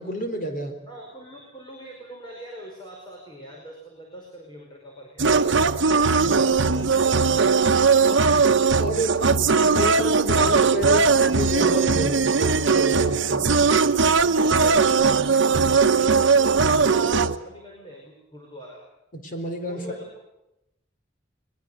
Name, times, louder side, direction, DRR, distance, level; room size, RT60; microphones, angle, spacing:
voice 1, 0.0-0.8 6.2-6.4 8.8-13.5 19.1-19.8, right 1 dB, 45° left, 6 dB, 4.1 m, -30 dB
voice 2, 0.9-5.3 6.1-7.0 14.2-18.8 19.6-20.2, right 1 dB, 25° left, -1 dB, 5.1 m, -42 dB
sound 1, 5.2-17.3, right 4 dB, 70° right, 1.0 m, -19 dB
22.0 x 21.5 x 8.1 m, 0.88 s
head